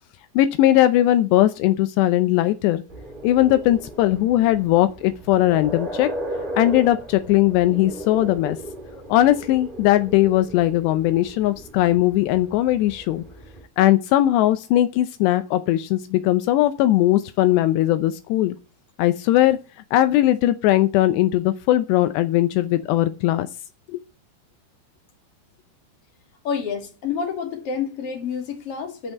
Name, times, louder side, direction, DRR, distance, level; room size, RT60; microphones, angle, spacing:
voice 1, 0.4-2.8 3.2-6.1 6.5-8.6 9.1-13.2 13.8-18.6 19.0-19.6 19.9-23.5 23.9-24.0, left 14 dB, 90° left, 2.4 m, -19 dB
sound 1, 2.9-13.6, right 1 dB, 40° right, 0.7 m, -36 dB
voice 2, 26.4-29.1, left 6 dB, 40° left, 2.5 m, -28 dB
12.0 x 5.4 x 8.0 m
omnidirectional pair, 5.8 m